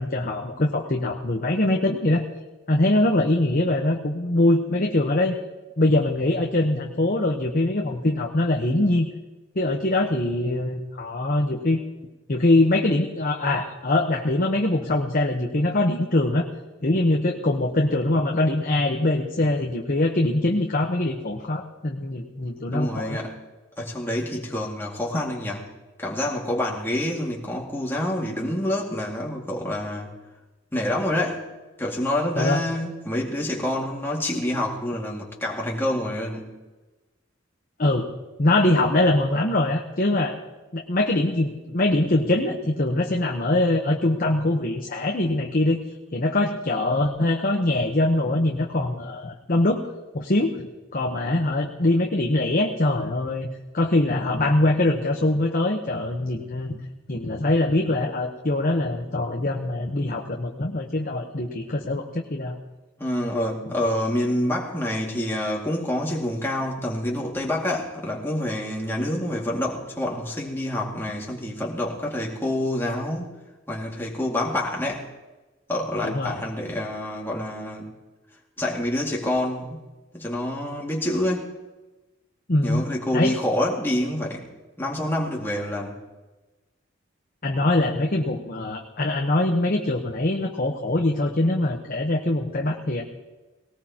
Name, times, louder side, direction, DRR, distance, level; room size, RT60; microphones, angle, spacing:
voice 1, 0.0-2.2 2.7-5.4 5.8-9.1 9.5-11.8 12.3-16.5 16.8-23.2 25.1-25.3 32.3-32.6 37.8-38.1 38.4-40.4 40.7-45.8 46.1-49.8 50.1-50.7 50.9-53.5 53.7-56.8 57.1-62.6 76.0-76.4 82.5-82.8 83.1-83.3 87.4-93.0, left 2 dB, 45° left, 2 dB, 1.0 m, -23 dB
voice 2, 22.7-23.3 23.8-25.7 26.0-30.1 30.7-31.5 31.8-36.5 63.0-73.4 73.7-75.1 75.7-77.9 78.6-79.8 80.1-81.5 82.6-84.5 84.8-86.0, left 1 dB, 10° left, -3 dB, 2.2 m, -27 dB
19.0 x 18.5 x 2.9 m, 1.1 s
head